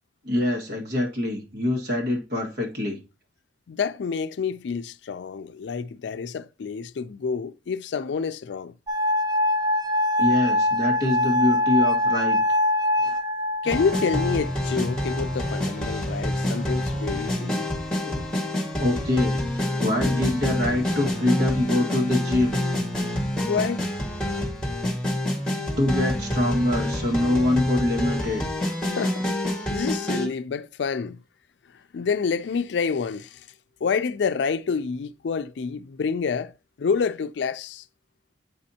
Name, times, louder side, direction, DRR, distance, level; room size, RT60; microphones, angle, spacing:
voice 1, 0.2-3.0 10.2-12.4 13.0-13.2 18.0-18.2 18.8-22.6 25.8-28.4, left 1 dB, 65° right, 1.8 m, -24 dB
voice 2, 3.7-8.7 13.6-17.7 23.5-23.9 29.0-29.3 29.7-31.2 31.9-33.4 33.8-36.5 36.8-37.8, left 5 dB, 75° left, 0.4 m, -28 dB
sound 1, 8.9-15.8 16.6-17.2, left 1 dB, 20° right, 0.5 m, -24 dB
sound 2, 13.6-30.3, left 1 dB, 5° left, 1.6 m, -27 dB
7.9 x 5.3 x 2.8 m
head